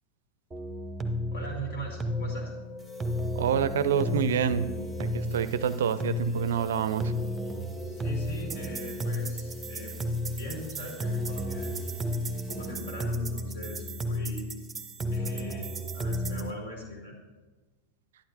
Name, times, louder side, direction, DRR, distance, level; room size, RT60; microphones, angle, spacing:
sound 1, 0.5-16.5, equal, 15° right, 0.8 m, -33 dB
voice 1, 1.3-2.5 7.8-12.0 12.4-14.5 15.1-17.2, right 1 dB, 55° left, 0 dB, 2.5 m, -40 dB
sound 2, 2.1-10.8, left 3 dB, 30° left, 0.5 m, -47 dB
sound 3, 2.8-12.7, left 7 dB, 10° left, 1.5 m, -52 dB
voice 2, 3.4-4.7 5.0-7.1, right 7 dB, 60° right, 14 dB, 0.4 m, -27 dB
11.5 x 10.5 x 2.7 m, 1.2 s
figure-of-eight pair, 90°, 0 cm